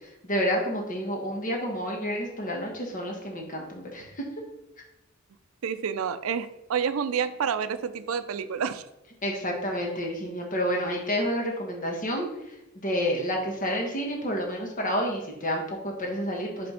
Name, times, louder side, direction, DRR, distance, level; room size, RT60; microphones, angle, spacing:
voice 1, 0.2-4.3 9.2-12.3 12.7-16.7, equal, 40° left, 1.2 m, -29 dB
voice 2, 5.6-8.8, right 7 dB, 90° right, 0.4 m, -29 dB
5.1 x 3.4 x 5.6 m
head